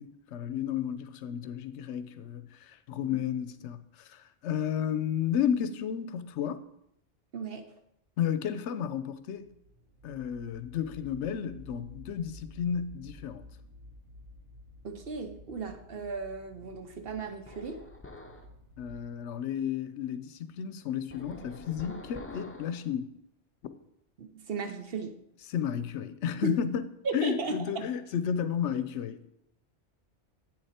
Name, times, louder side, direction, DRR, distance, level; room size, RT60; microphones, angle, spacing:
voice 1, 0.0-6.6 8.2-9.5 10.0-13.4 18.8-23.1 25.5-26.8 27.1-29.3, left 8 dB, 80° left, 0.9 m, -32 dB
voice 2, 7.3-7.7 14.8-17.8 24.2-25.2 26.4-26.5 27.0-27.9, right 3 dB, 55° right, 1.0 m, -35 dB
sound 1, 9.3-19.2, left 1 dB, 80° right, 1.5 m, -52 dB
sound 2, 17.5-18.5 21.1-22.9, left 2 dB, 15° left, 0.6 m, -46 dB
8.6 x 6.7 x 4.2 m
omnidirectional pair, 1.2 m